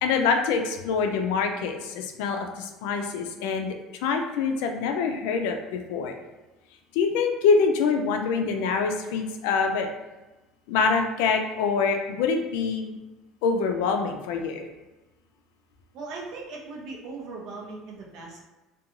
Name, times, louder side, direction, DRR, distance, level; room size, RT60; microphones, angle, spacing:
voice 1, 0.0-6.2 6.9-9.9 10.7-13.0 13.4-14.6, left 5 dB, 90° left, 4 dB, 0.4 m, -25 dB
voice 2, 15.9-18.4, right 3 dB, 50° right, -3 dB, 0.6 m, -39 dB
2.5 x 2.2 x 2.8 m, 1.1 s
cardioid pair, 165°, 0 cm